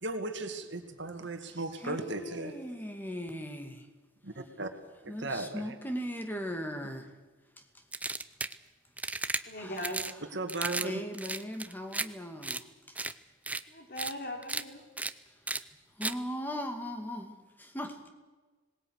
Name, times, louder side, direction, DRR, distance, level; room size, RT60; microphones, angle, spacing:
voice 1, 0.0-2.5 4.2-4.7 5.0-5.8 10.3-11.0, right 2 dB, 55° right, 6 dB, 2.2 m, -36 dB
voice 2, 1.5-3.9 5.1-7.1 9.6-9.7 10.8-13.0 16.0-18.0, equal, 10° left, 5 dB, 2.3 m, -38 dB
sound 1, 7.9-8.6 9.0-9.4 9.8-10.1 10.5-10.9 11.1-12.1 12.4-12.6 13.0-13.1 13.5-13.6 14.0-14.1 14.4-14.6 15.0-15.1 15.5-15.6 16.0-16.1, right 3 dB, 5° right, 0.6 m, -34 dB
voice 3, 9.4-10.2 13.7-14.8, equal, 45° left, 4 dB, 3.6 m, -39 dB
26.0 x 20.0 x 6.6 m, 1.3 s
head